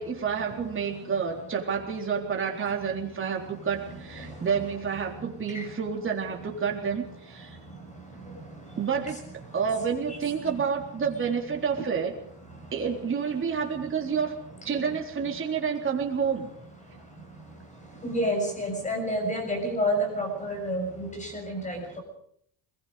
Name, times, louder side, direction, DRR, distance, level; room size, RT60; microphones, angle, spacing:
voice 1, 0.0-7.6 8.8-9.2 9.5-12.1 12.7-14.4 14.6-16.5, right 6 dB, 25° right, 1 dB, 3.8 m, -29 dB
voice 2, 18.0-22.0, equal, 15° left, 4 dB, 6.3 m, -29 dB
26.0 x 22.0 x 5.2 m, 0.67 s
cardioid pair, 175°, 49 cm